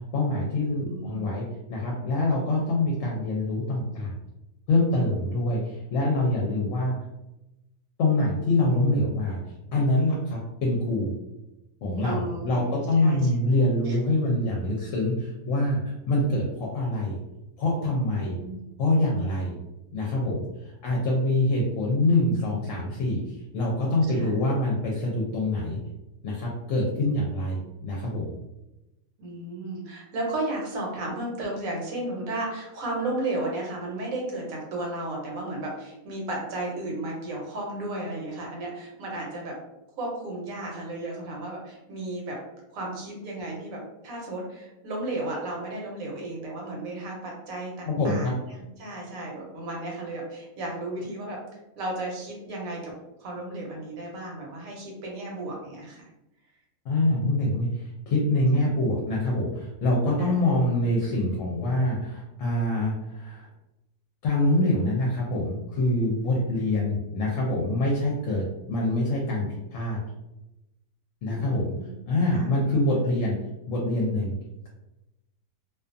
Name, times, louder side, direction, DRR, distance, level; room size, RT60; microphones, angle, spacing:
voice 1, 0.1-1.4 1.7-4.1 4.7-7.0 8.0-9.4 9.7-11.1 11.8-15.8 16.1-17.2 17.6-18.4 18.8-19.5 19.9-23.2 23.5-25.8 26.2-28.3 47.9-48.3 56.9-63.5 64.2-70.0 71.2-71.7 72.1-73.3 73.7-74.3, left 1 dB, 70° left, -2 dB, 0.9 m, -25 dB
voice 2, 0.8-1.3 12.0-13.2 13.8-14.0 18.2-18.6 24.2-24.3 29.2-39.5 40.0-42.4 42.7-51.4 51.8-52.9 53.2-56.0 58.5-58.8 60.2-60.4 71.3-71.9 72.3-72.4, right 2 dB, 70° right, -2 dB, 1.1 m, -34 dB
2.5 x 2.3 x 2.5 m, 0.94 s
omnidirectional pair, 1.5 m